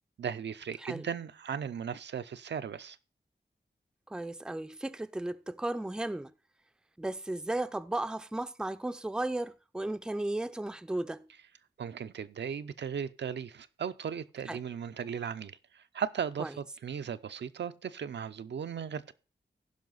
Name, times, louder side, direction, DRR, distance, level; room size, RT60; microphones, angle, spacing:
voice 1, 0.2-3.0 11.8-19.1, right 7 dB, 80° right, 0.5 m, -37 dB
voice 2, 4.1-6.3 7.0-11.3 14.5-14.6 16.4-16.5, right 1 dB, 5° right, 0.4 m, -35 dB
15.5 x 5.5 x 3.9 m
wide cardioid pair, 85°, 18 cm